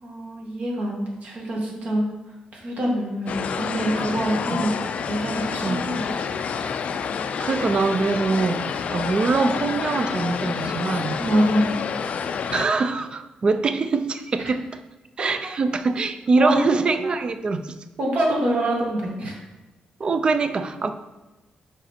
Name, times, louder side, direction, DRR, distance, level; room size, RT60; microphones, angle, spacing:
voice 1, 0.0-2.1 2.5-4.7 5.1-6.1 11.2-11.8 16.4-16.8 18.0-19.3, right 1 dB, 55° right, -2 dB, 1.5 m, -25 dB
sound 1, 3.3-12.7, left 6 dB, 50° left, 0.4 m, -28 dB
voice 2, 7.4-11.2 12.5-14.6 15.2-17.7 20.0-20.9, right 3 dB, 35° right, 9 dB, 0.4 m, -23 dB
5.2 x 5.0 x 4.3 m, 1.1 s
wide cardioid pair, 150°, 3 cm